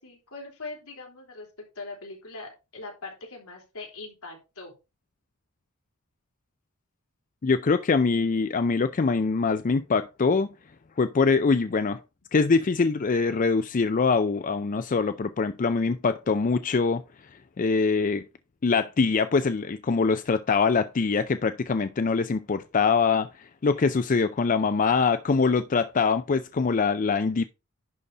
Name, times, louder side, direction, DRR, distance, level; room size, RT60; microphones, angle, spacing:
voice 1, 0.0-4.7, left 3 dB, 75° left, 3.9 m, -41 dB
voice 2, 7.4-10.5 11.0-12.0 12.3-17.0 17.3-18.2 18.6-27.4, left 4 dB, 35° left, 0.4 m, -24 dB
11.0 x 4.1 x 4.8 m
head